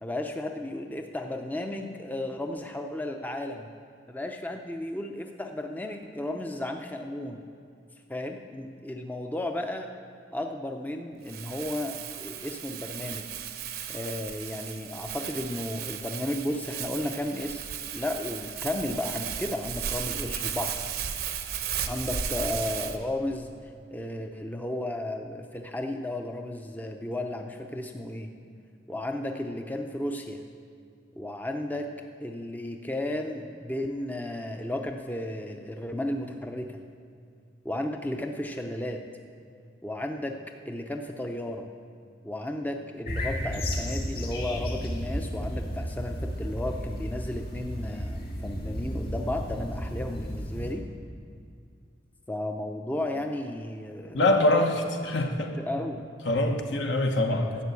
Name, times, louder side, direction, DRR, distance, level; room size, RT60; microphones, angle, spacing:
voice 1, 0.0-3.7 4.1-7.4 8.1-9.9 10.3-13.2 13.9-17.6 17.9-20.8 21.9-23.5 23.9-28.3 28.9-30.4 31.1-31.9 32.2-36.8 37.6-39.0 39.8-40.3 40.7-41.7 42.2-50.8 52.3-54.2 55.6-56.0, left 1 dB, 10° left, 4 dB, 0.5 m, -33 dB
Crumpling crinkling, 11.3-23.0, right 8 dB, 55° right, 0.7 m, -35 dB
sound 1, 43.1-50.7, equal, 50° left, 2.1 m, -33 dB
voice 2, 54.1-55.6 56.2-57.6, left 1 dB, 75° left, 4 dB, 1.2 m, -24 dB
12.5 x 6.8 x 8.3 m, 2.3 s
head